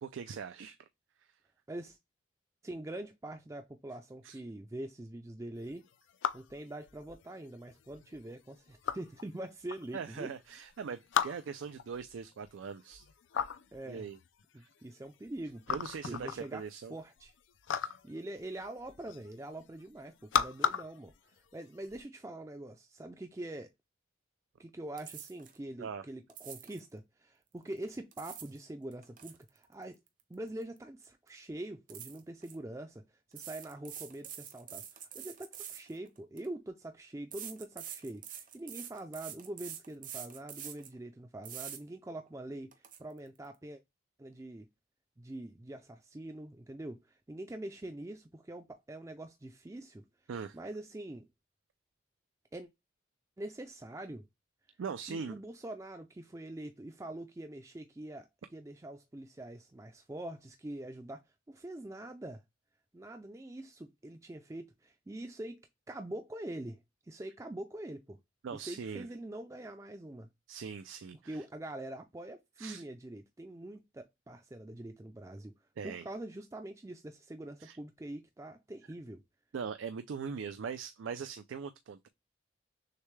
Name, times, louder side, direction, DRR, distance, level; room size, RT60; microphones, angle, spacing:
voice 1, 0.0-0.8 4.2-4.4 9.9-13.1 13.9-14.2 15.7-16.9 17.7-17.9 25.8-26.0 50.3-50.6 54.8-55.4 68.4-69.1 70.5-71.4 72.6-72.8 75.8-76.1 77.6-77.8 79.5-82.1, right 6 dB, 90° right, 0.4 m, -41 dB
voice 2, 2.6-5.8 6.3-10.3 13.7-14.1 14.5-15.8 16.0-16.6 16.9-17.3 18.0-23.7 24.6-30.0 30.3-33.0 33.3-43.8 44.2-44.7 45.2-50.0 50.5-51.3 52.5-52.7 53.4-54.3 55.1-61.2 61.5-62.4 62.9-66.8 67.0-68.2 68.5-70.3 71.2-75.6 75.8-79.2, right 1 dB, 15° right, 0.4 m, -44 dB
sound 1, 5.6-22.0, left 7 dB, 80° left, 0.4 m, -38 dB
sound 2, 25.0-25.6 26.3-26.8 27.9-28.6 28.9-30.8 31.0-31.3 31.9-32.5 33.3-36.5 37.3-40.9 41.4-41.8 42.3-42.4 42.7-43.0, right 9 dB, 45° right, 0.7 m, -46 dB
6.5 x 2.2 x 3.2 m
head